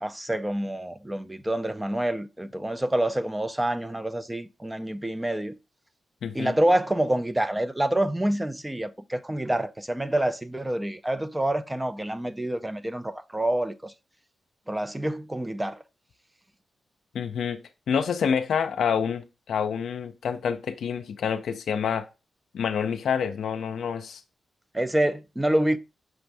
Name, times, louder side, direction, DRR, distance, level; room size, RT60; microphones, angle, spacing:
voice 1, 0.0-5.5 6.3-13.9 14.7-15.8 24.7-25.8, right 1 dB, 15° right, 0.4 m, -27 dB
voice 2, 6.2-6.5 17.1-17.6 17.9-22.1 22.5-24.2, left 7 dB, 80° left, 0.4 m, -27 dB
6.0 x 2.6 x 3.3 m
cardioid pair, 55°, 0 cm